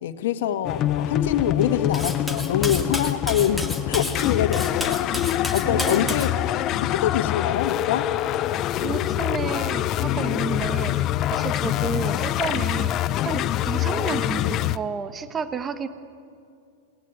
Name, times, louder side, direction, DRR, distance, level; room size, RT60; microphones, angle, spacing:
voice 1, 0.0-5.0 5.3-6.3 6.8-8.1 11.8-12.0 14.4-14.6, left 10 dB, 70° left, 8 dB, 1.8 m, -25 dB
sound 1, 0.6-14.8, left 12 dB, 40° left, 0.7 m, -25 dB
Cutlery silverware, 1.9-6.3, left 1 dB, ahead, 2.3 m, -32 dB
voice 2, 5.6-6.2 8.8-11.1 11.3-12.9 13.2-15.9, right 5 dB, 20° right, 10 dB, 1.3 m, -31 dB
28.0 x 19.5 x 9.4 m, 2.4 s
hypercardioid pair, 110°, 0 cm